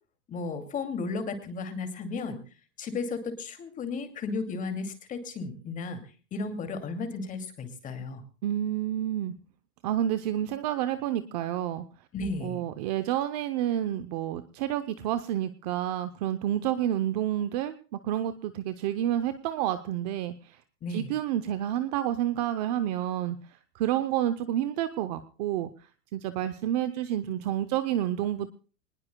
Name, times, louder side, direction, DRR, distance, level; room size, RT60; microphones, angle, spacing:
voice 1, 0.3-2.4 2.8-6.0 6.3-8.2 12.1-12.6 20.8-21.1, left 4 dB, 15° left, 9 dB, 2.5 m, -34 dB
voice 2, 8.4-9.3 9.8-11.8 12.4-17.7 18.0-20.6 20.9-23.4 23.7-25.7 26.1-28.6, right 11 dB, 25° right, 11 dB, 0.7 m, -29 dB
25.5 x 20.0 x 2.2 m, 0.38 s
supercardioid pair, 165°, 46 cm